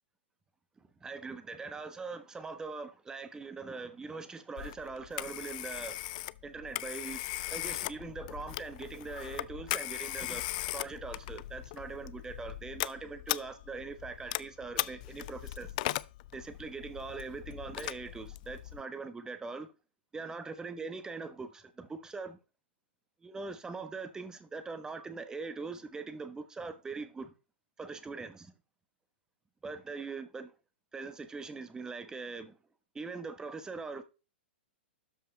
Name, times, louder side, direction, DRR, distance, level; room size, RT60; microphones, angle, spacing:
voice 1, 1.0-6.1 6.4-7.2 7.5-15.7 16.3-19.7 20.1-22.4 23.2-27.3 27.8-28.5 29.6-30.5 30.9-32.6 32.9-34.0, right 4 dB, 10° right, 1.1 m, -42 dB
Telephone, 4.6-18.8, left 18 dB, 45° left, 0.3 m, -39 dB
12.5 x 5.4 x 3.3 m
figure-of-eight pair, 110°, 6 cm